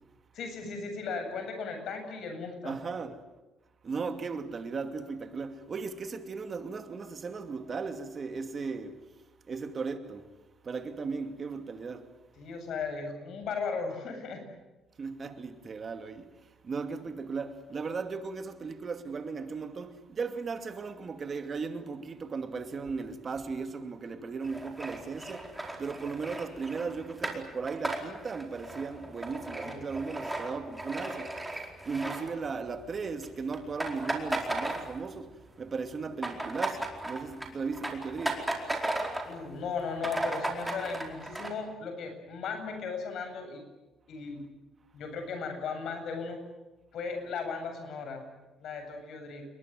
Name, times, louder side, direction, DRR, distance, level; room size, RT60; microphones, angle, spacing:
voice 1, 0.3-2.8 12.4-14.4 29.6-29.8 39.2-43.6 44.1-44.4 44.9-46.4 46.9-48.2 48.6-49.4, left 5 dB, 65° left, 8.0 m, -36 dB
voice 2, 2.6-3.2 3.8-9.0 9.5-10.3 10.6-12.1 15.0-16.3 16.6-38.5, right 4 dB, 35° right, 2.5 m, -37 dB
sound 1, 24.4-32.8 33.1-33.3 33.5-35.3 35.6-39.4 39.7-39.8 40.0-41.5, right 2 dB, 5° right, 4.6 m, -36 dB
28.5 x 23.0 x 7.9 m
cardioid pair, 140°, 0 cm